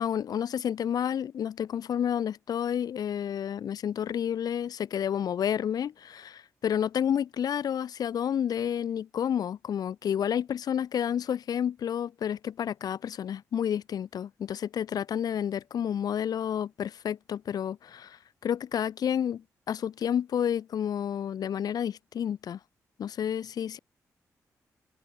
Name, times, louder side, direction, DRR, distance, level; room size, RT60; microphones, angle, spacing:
voice 1, 0.0-22.6 23.0-23.8, left 9 dB, 75° left, 6.9 m, -30 dB
cardioid pair, 60°, 7 cm